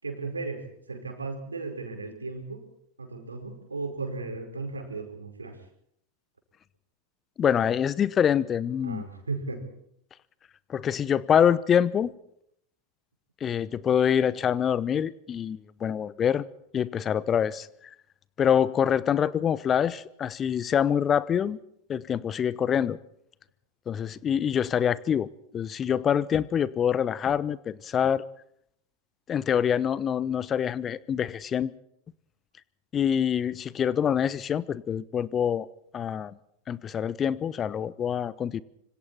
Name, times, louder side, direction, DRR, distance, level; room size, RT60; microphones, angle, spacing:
voice 1, 0.0-2.6 3.0-5.6 8.8-9.7, right 3 dB, 75° right, 5 dB, 5.2 m, -35 dB
voice 2, 7.4-9.0 10.7-12.1 13.4-16.4 16.7-17.7 18.4-21.6 21.9-23.0 23.9-28.2 29.3-31.7 32.9-35.7 35.9-36.3 36.7-38.6, left 8 dB, 25° left, 20 dB, 0.9 m, -25 dB
26.0 x 25.5 x 4.4 m, 0.72 s
figure-of-eight pair, 90°, 0 cm